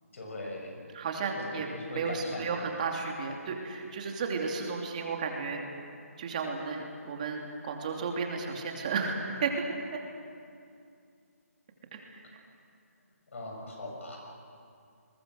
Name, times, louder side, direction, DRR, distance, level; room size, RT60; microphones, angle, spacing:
voice 1, 0.1-0.7 1.4-2.7 13.3-14.2, left 2 dB, 55° left, 0 dB, 7.4 m, -40 dB
voice 2, 0.9-5.6 6.2-9.7 11.9-12.2, right 4 dB, 30° right, 2 dB, 2.8 m, -33 dB
28.5 x 22.0 x 6.6 m, 2.4 s
hypercardioid pair, 165°, 8 cm